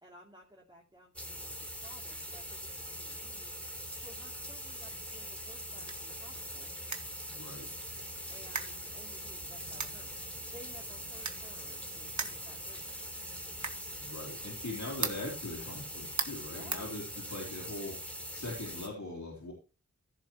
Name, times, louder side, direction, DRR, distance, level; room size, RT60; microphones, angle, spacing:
voice 1, 0.0-6.7 8.3-13.2 16.5-16.9, equal, 15° right, -2 dB, 3.2 m, -56 dB
sound 1, 1.2-18.9, equal, 5° left, 3.7 m, -42 dB
sound 2, 5.3-17.6, right 4 dB, 70° right, 1.7 m, -43 dB
voice 2, 7.3-7.9 14.0-19.5, left 2 dB, 70° left, -3 dB, 3.8 m, -41 dB
15.5 x 7.1 x 3.2 m, 0.33 s
wide cardioid pair, 50°, 30 cm